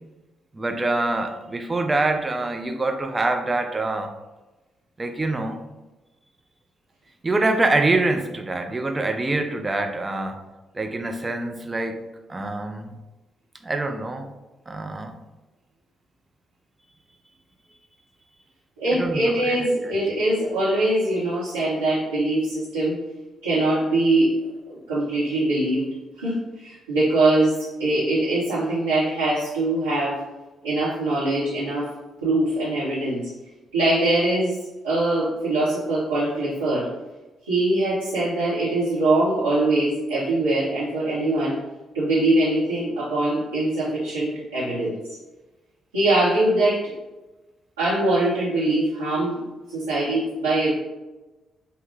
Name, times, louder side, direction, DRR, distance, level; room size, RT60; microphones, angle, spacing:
voice 1, 0.5-4.1 5.0-5.7 7.2-10.4 10.7-12.0 12.3-12.9 13.6-14.3 14.7-15.1 18.9-19.6, right 2 dB, 25° right, 5 dB, 0.5 m, -25 dB
voice 2, 18.8-23.0 23.4-24.3 24.7-25.9 26.2-30.2 30.6-31.9 32.2-33.2 33.7-34.6 34.8-36.9 37.4-41.6 41.9-45.0 45.9-46.8 47.8-49.4 49.7-50.7, right 2 dB, 80° right, -12 dB, 0.9 m, -22 dB
5.3 x 2.2 x 3.2 m, 1.1 s
figure-of-eight pair, 40°, 0 cm